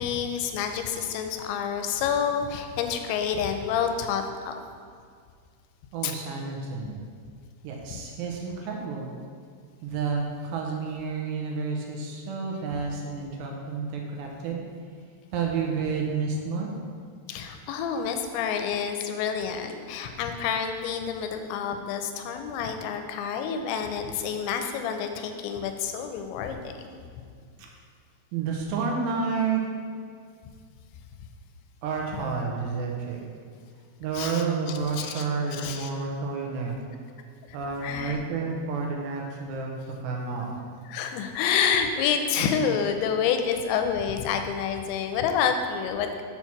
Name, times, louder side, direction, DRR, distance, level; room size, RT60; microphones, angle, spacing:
voice 1, 0.0-4.6 6.0-6.1 7.9-8.0 17.3-27.0 34.1-35.3 35.5-35.9 37.8-38.2 40.9-46.2, left 7 dB, 85° left, 6 dB, 2.9 m, -28 dB
voice 2, 5.9-7.0 7.6-9.1 9.8-14.6 15.3-16.7 27.6-27.7 28.3-29.6 31.8-33.2 34.0-36.7 37.5-39.7 40.0-40.5, right 5 dB, 80° right, 0 dB, 2.9 m, -30 dB
7.3 x 4.5 x 5.8 m, 2.1 s
omnidirectional pair, 5.1 m